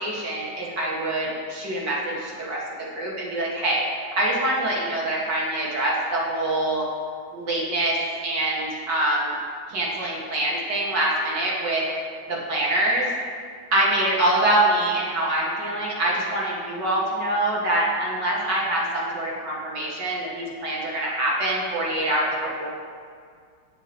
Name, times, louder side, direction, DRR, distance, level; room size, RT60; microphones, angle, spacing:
voice 1, 0.0-2.6 2.9-3.8 4.2-6.8 7.3-8.0 8.2-9.3 9.7-11.8 12.3-13.1 13.7-22.7, right 1 dB, 65° right, -5 dB, 2.7 m, -25 dB
19.0 x 6.6 x 3.1 m, 2.1 s
omnidirectional pair, 2.1 m